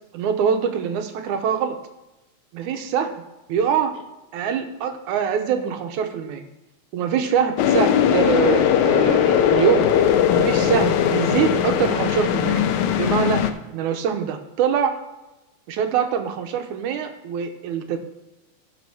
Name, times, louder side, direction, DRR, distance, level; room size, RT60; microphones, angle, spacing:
voice 1, 0.1-1.8 2.5-3.1 3.5-4.1 4.3-6.5 6.9-9.9 10.3-12.6 13.0-13.4 13.7-15.0 15.7-18.0, right 7 dB, 85° right, 6 dB, 2.4 m, -23 dB
sound 1, 7.6-13.5, left 9 dB, 80° left, 2.0 m, -19 dB
11.5 x 5.4 x 5.8 m, 1.0 s
omnidirectional pair, 3.4 m